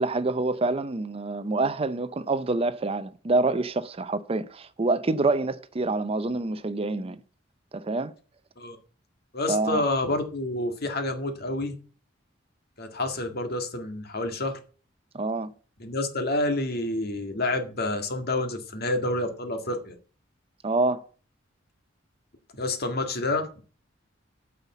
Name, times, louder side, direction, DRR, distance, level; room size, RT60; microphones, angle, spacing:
voice 1, 0.0-7.2 7.7-8.1 9.5-9.8 15.1-15.5 20.6-21.0, right 3 dB, 30° right, 0.5 m, -26 dB
voice 2, 9.3-11.7 12.8-14.6 15.8-20.0 22.5-23.5, left 2 dB, 55° left, 1.8 m, -28 dB
9.3 x 5.7 x 7.1 m
head